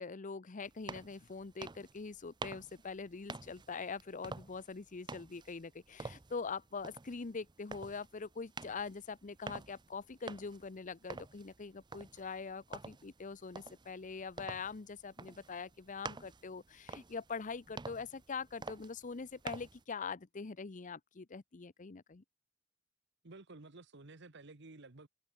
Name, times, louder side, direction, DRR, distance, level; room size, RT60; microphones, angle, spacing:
voice 1, 0.0-22.2, left 5 dB, 40° left, 0.7 m, -43 dB
sound 1, 0.6-19.8, right 4 dB, 20° right, 0.6 m, -49 dB
voice 2, 23.2-25.1, right 2 dB, 60° right, 1.4 m, -53 dB
head